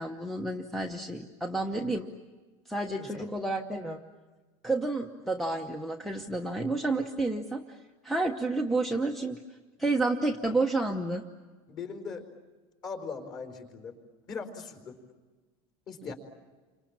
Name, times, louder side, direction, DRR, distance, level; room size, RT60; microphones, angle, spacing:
voice 1, 0.0-2.1 2.7-4.0 4.6-7.8 8.0-9.4 9.8-11.2 16.1-16.2, right 2 dB, ahead, 3 dB, 0.9 m, -30 dB
voice 2, 3.0-3.3 11.6-12.3 12.8-14.0 14.3-15.0 15.9-16.1, left 5 dB, 30° left, 5 dB, 4.6 m, -40 dB
29.5 x 26.0 x 7.4 m, 1.3 s
cardioid pair, 175°, 14 cm